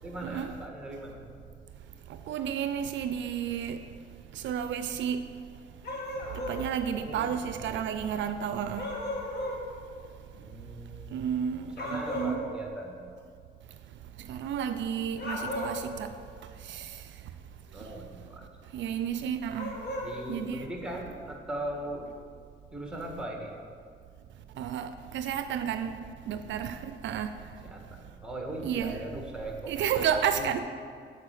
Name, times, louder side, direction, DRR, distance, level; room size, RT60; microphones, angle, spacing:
voice 1, 0.0-1.3 6.9-7.8 10.3-11.1 11.6-13.0 17.7-18.5 20.0-22.1 22.7-23.5 27.6-30.6, right 1 dB, 5° right, 1.5 m, -39 dB
voice 2, 2.3-3.8 4.3-5.2 6.3-8.9 11.1-12.4 14.2-16.1 16.6-17.0 18.7-19.8 20.3-20.7 24.6-26.0 26.3-27.4 28.6-29.0 29.7-30.6, right 8 dB, 70° right, 0.4 m, -31 dB
sound 1, 5.8-6.6 8.8-9.6 11.8-12.4 15.1-15.9 19.5-20.1, left 1 dB, 55° left, 1.7 m, -35 dB
7.5 x 4.3 x 6.6 m
cardioid pair, 90°, 20 cm